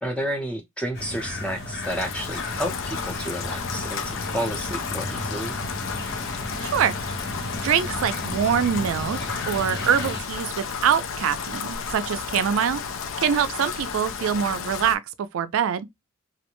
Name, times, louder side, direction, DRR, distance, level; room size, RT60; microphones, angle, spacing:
voice 1, 0.0-5.6, equal, 5° left, 0.6 m, -31 dB
sound 1, 0.9-10.2, left 1 dB, 55° left, 0.8 m, -34 dB
Rain, 1.8-15.0, left 6 dB, 80° left, 0.4 m, -32 dB
voice 2, 6.6-6.9 7.6-9.2 9.5-12.8 13.2-15.0 15.3-15.9, right 8 dB, 90° right, 0.3 m, -24 dB
2.4 x 2.1 x 2.9 m
head